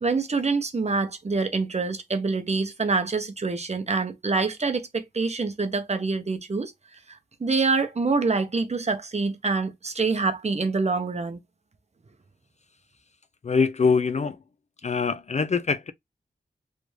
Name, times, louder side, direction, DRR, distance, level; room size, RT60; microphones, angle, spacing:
voice 1, 0.0-6.7 7.4-11.4, right 4 dB, 35° right, 0.7 m, -26 dB
voice 2, 13.4-14.4 14.8-15.9, left 5 dB, 40° left, 0.4 m, -23 dB
3.3 x 2.5 x 3.1 m
wide cardioid pair, 105°, 18 cm